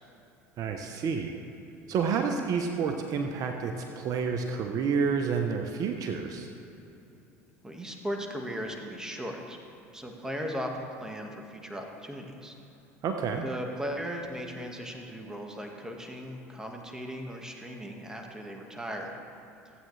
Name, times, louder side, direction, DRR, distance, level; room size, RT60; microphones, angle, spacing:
voice 1, 0.6-1.4 1.9-6.5 13.0-13.4, right 5 dB, 50° right, 4 dB, 0.9 m, -29 dB
voice 2, 7.6-9.6 9.9-12.5 13.4-19.1, equal, 10° right, 1 dB, 1.7 m, -37 dB
16.0 x 8.8 x 3.3 m, 3.0 s
hypercardioid pair, 80°, 8 cm